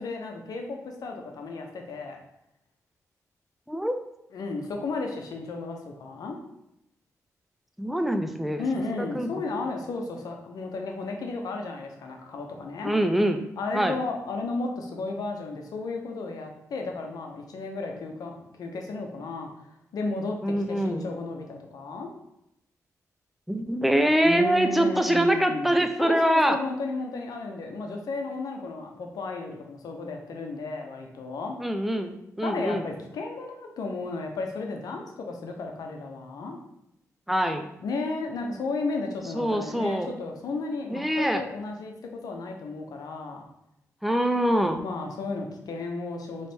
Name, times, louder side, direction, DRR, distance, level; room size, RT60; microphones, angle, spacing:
voice 1, 0.0-2.2 4.3-6.5 8.6-12.9 13.6-19.5 19.9-22.1 24.2-31.6 32.4-36.6 37.8-43.4 44.8-46.5, left 3 dB, 75° left, 2 dB, 0.7 m, -33 dB
voice 2, 7.8-8.7 8.9-9.3 12.8-13.4 13.7-14.0 20.4-21.1 23.5-26.6 31.6-32.8 37.3-37.6 39.3-40.1 40.9-41.4 44.0-44.8, right 1 dB, ahead, 6 dB, 0.5 m, -24 dB
4.1 x 3.1 x 3.4 m, 0.83 s
cardioid pair, 60°, 6 cm